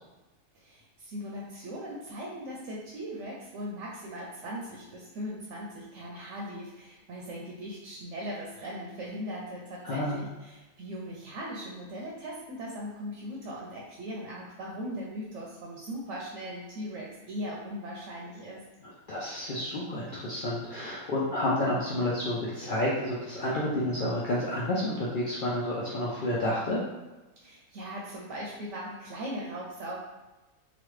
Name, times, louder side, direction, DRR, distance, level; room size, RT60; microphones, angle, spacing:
voice 1, 0.5-18.6 27.4-30.0, equal, 65° right, -4 dB, 0.9 m, -39 dB
voice 2, 9.8-10.2 18.8-26.8, left 1 dB, 90° left, -6 dB, 0.4 m, -30 dB
3.1 x 2.3 x 3.1 m, 1.1 s
omnidirectional pair, 1.5 m